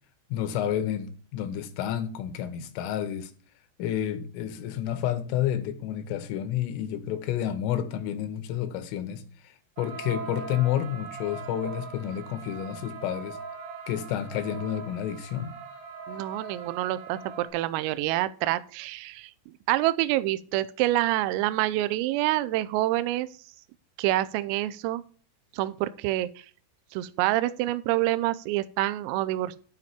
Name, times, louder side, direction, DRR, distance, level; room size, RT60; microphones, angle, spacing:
voice 1, 0.3-3.3 3.8-13.4 13.9-15.5, left 10 dB, 80° left, 3.4 m, -30 dB
sound 1, 9.8-17.5, right 5 dB, 70° right, 2.6 m, -41 dB
voice 2, 16.1-23.3 24.0-25.0 25.5-26.5 26.9-29.6, right 16 dB, 85° right, 3.2 m, -27 dB
12.5 x 5.3 x 4.2 m
omnidirectional pair, 6.0 m